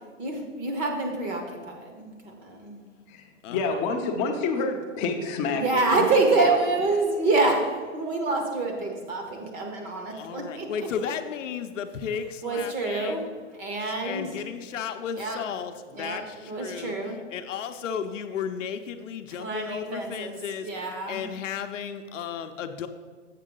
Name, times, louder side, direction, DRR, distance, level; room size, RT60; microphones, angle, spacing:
voice 1, 0.2-2.8 5.5-10.9 12.4-13.2 13.6-14.3 15.2-15.4 15.9-17.2 19.4-21.3, right 3 dB, 20° right, 2 dB, 0.8 m, -27 dB
voice 2, 3.1-6.6, left 4 dB, 20° left, 2 dB, 0.6 m, -28 dB
voice 3, 10.1-13.3 13.8-22.9, left 7 dB, 70° left, 7 dB, 0.7 m, -34 dB
7.4 x 6.2 x 3.8 m, 1.5 s
hypercardioid pair, 145°, 39 cm